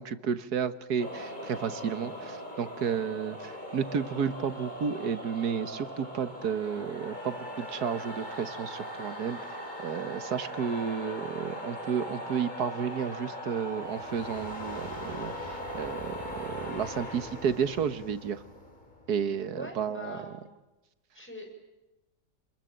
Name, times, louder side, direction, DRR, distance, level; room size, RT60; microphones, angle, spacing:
voice 1, 0.0-9.4 9.8-18.4 19.1-20.2, right 7 dB, 65° right, 12 dB, 1.8 m, -32 dB
sound 1, 1.0-19.5, equal, 25° left, 3.9 m, -40 dB
voice 2, 19.5-20.4 21.1-21.5, left 1 dB, 5° left, 3 dB, 6.3 m, -42 dB
29.0 x 21.0 x 8.9 m, 1.0 s
omnidirectional pair, 1.8 m